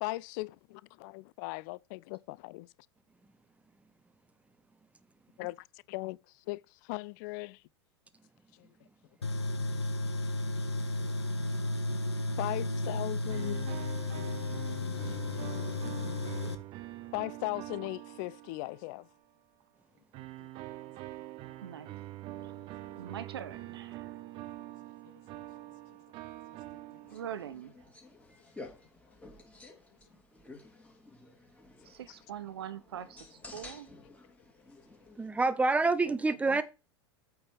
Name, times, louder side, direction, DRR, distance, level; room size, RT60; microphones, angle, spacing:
voice 1, 0.0-2.7 5.4-6.2 6.5-7.6 8.6-8.7 12.4-13.7 15.0-15.1 17.1-19.1 25.1-25.2, left 22 dB, 50° left, 0.4 m, -38 dB
Tools, 9.2-16.5, left 2 dB, 85° left, 0.9 m, -33 dB
sound 1, 13.3-19.1 20.1-27.5, right 16 dB, 40° right, 0.7 m, -45 dB
voice 2, 21.6-21.9 22.4-22.6 23.0-24.2 27.1-27.9 31.8-33.9 36.0-36.6, right 9 dB, 65° right, 1.1 m, -43 dB
sound 2, 27.0-35.4, left 2 dB, 10° left, 2.9 m, -52 dB
voice 3, 35.2-36.6, right 3 dB, 10° right, 0.8 m, -27 dB
8.6 x 4.7 x 5.6 m
figure-of-eight pair, 85°, 14 cm